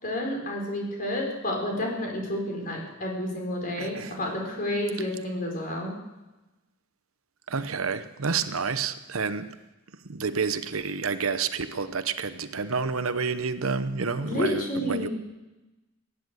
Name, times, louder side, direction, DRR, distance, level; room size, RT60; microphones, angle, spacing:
voice 1, 0.0-6.0 14.2-15.1, left 1 dB, 45° left, 0 dB, 4.5 m, -30 dB
voice 2, 3.8-4.2 7.5-9.5 10.1-15.1, right 5 dB, 85° right, 11 dB, 0.9 m, -29 dB
17.0 x 10.0 x 8.1 m, 1.1 s
head